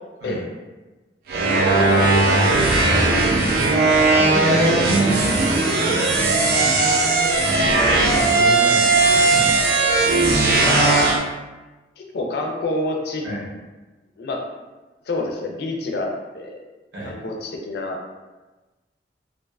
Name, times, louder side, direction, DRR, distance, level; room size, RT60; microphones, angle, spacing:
sound 1, 1.3-11.2, right 3 dB, 55° right, 0.3 m, -17 dB
voice 1, 1.7-3.2 10.6-11.2 12.0-13.2 14.2-14.4 15.1-16.6 17.0-18.0, left 2 dB, 60° left, 0 dB, 0.4 m, -27 dB
voice 2, 4.1-6.4 7.9-9.7 13.2-13.4 16.9-17.2, equal, 75° right, -6 dB, 0.9 m, -30 dB
2.4 x 2.2 x 2.3 m, 1.2 s
head